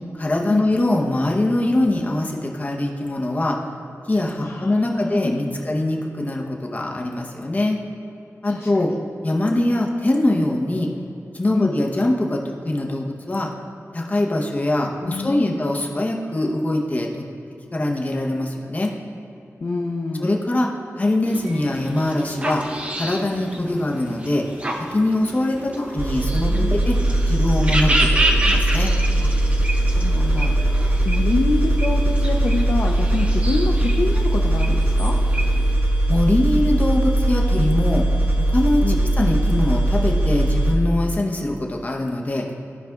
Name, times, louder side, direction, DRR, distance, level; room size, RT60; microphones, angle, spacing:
voice 1, 0.2-3.6 4.1-7.8 8.4-8.9 9.2-10.9 11.3-13.5 13.9-17.2 17.7-18.9 20.2-20.7 21.0-22.6 23.0-24.4 24.9-26.9 27.3-28.9 36.1-38.0 38.5-38.8 39.2-42.4, left 1 dB, 30° left, 0 dB, 0.8 m, -22 dB
voice 2, 4.4-5.6 8.4-8.9 11.5-11.7 15.0-15.6 19.6-20.3 25.8-26.8 29.2-29.3 29.8-30.6 31.0-35.2 38.8-39.1, left 3 dB, 50° left, 0 dB, 0.4 m, -27 dB
sound 1, 21.3-35.7, right 1 dB, 25° right, 0.7 m, -29 dB
sound 2, 26.0-40.7, right 1 dB, 60° right, 1.3 m, -20 dB
14.5 x 5.0 x 2.3 m, 2.9 s
wide cardioid pair, 100°, 5 cm